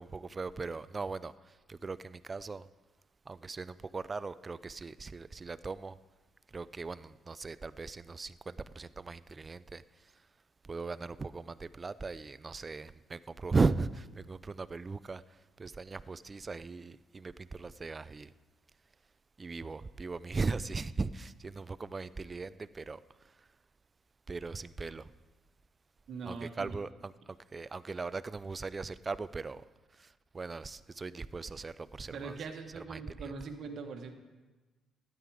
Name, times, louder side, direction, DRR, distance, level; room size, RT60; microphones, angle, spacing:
voice 1, 0.0-2.7 3.3-6.0 6.5-10.3 10.6-18.3 19.4-23.5 24.3-25.1 26.3-29.6 29.9-32.4 32.8-33.3, right 4 dB, 30° right, 0.3 m, -38 dB
voice 2, 26.1-26.8 32.1-34.1, right 4 dB, 65° right, 1.3 m, -42 dB
12.5 x 9.3 x 4.9 m
cardioid pair, 90°, 0 cm